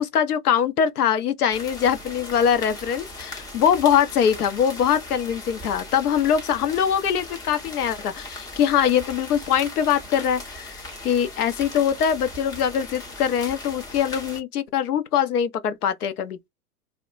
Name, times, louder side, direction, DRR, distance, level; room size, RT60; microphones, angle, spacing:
voice 1, 0.0-16.4, left 8 dB, 75° left, 0.7 m, -23 dB
sound 1, 1.5-14.4, left 2 dB, 10° left, 0.5 m, -39 dB
2.1 x 2.1 x 3.7 m
hypercardioid pair, 105°, 46 cm